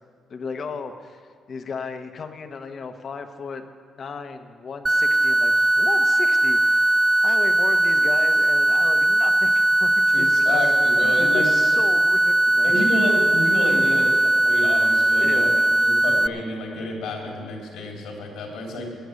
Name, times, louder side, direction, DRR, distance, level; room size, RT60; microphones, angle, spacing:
voice 1, 0.3-3.7 4.0-10.6 11.0-12.9 14.0-14.1 15.2-15.8, left 5 dB, 50° left, 7 dB, 1.1 m, -35 dB
sound 1, 4.9-16.3, right 1 dB, 15° right, 0.3 m, -19 dB
voice 2, 10.1-11.5 12.6-14.1 14.4-15.5 15.7-18.9, left 1 dB, 85° left, 0 dB, 3.3 m, -29 dB
11.5 x 9.2 x 8.4 m, 2.1 s
cardioid pair, 90°, 0 cm